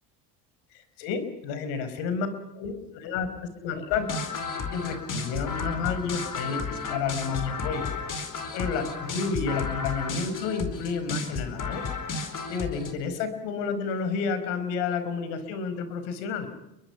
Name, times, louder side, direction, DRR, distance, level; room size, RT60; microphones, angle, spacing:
voice 1, 0.7-2.3 2.5-4.1 4.7-7.9 8.5-11.8 12.5-16.5, left 5 dB, 85° left, 10 dB, 4.9 m, -30 dB
sound 1, 3.9-12.9, left 4 dB, 40° left, 4.6 m, -33 dB
30.0 x 23.5 x 5.9 m, 0.87 s
supercardioid pair, 85°, 48 cm